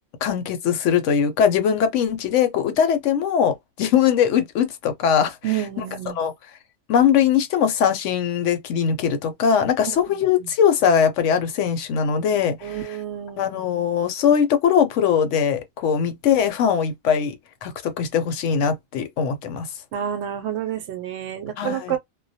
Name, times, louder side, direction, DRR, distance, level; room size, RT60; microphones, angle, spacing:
voice 1, 0.2-5.4 6.2-6.3 6.9-12.8 13.4-17.4 17.6-19.7 21.6-22.0, left 8 dB, 80° left, 0.9 m, -21 dB
voice 2, 5.4-6.2 9.8-10.0 10.4-10.5 12.6-13.6 19.9-22.0, right 10 dB, 70° right, 0.8 m, -29 dB
2.2 x 2.1 x 2.6 m
omnidirectional pair, 1.3 m